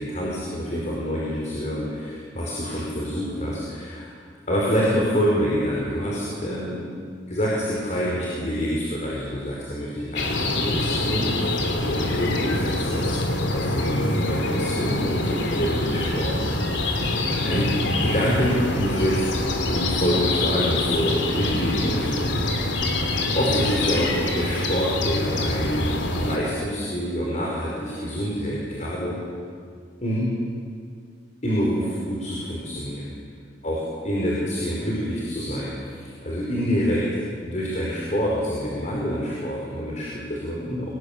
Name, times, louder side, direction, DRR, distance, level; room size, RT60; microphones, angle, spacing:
voice 1, 0.0-4.1 4.5-6.8 7.3-13.2 13.5-16.3 16.8-17.7 18.0-19.2 19.7-22.7 23.4-29.2 30.0-30.3 31.4-33.1 33.6-37.1 37.4-40.9, equal, 40° left, -4 dB, 5.1 m, -27 dB
sound 1, 10.2-26.4, left 2 dB, 75° left, 3.0 m, -25 dB
26.0 x 19.0 x 8.7 m, 2.2 s
head